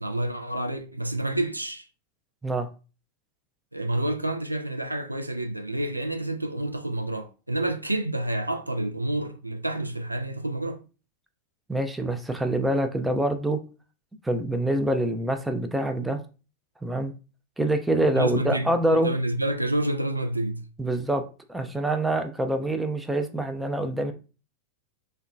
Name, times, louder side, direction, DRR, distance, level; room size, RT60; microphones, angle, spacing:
voice 1, 0.0-1.9 3.7-10.8 18.0-20.7, right 1 dB, 85° right, 0.3 m, -29 dB
voice 2, 11.7-13.6 14.2-16.2 16.8-17.1 17.6-19.1 20.8-21.2 21.5-24.1, right 1 dB, 5° right, 0.4 m, -25 dB
3.6 x 2.1 x 2.4 m
figure-of-eight pair, 90°, 0 cm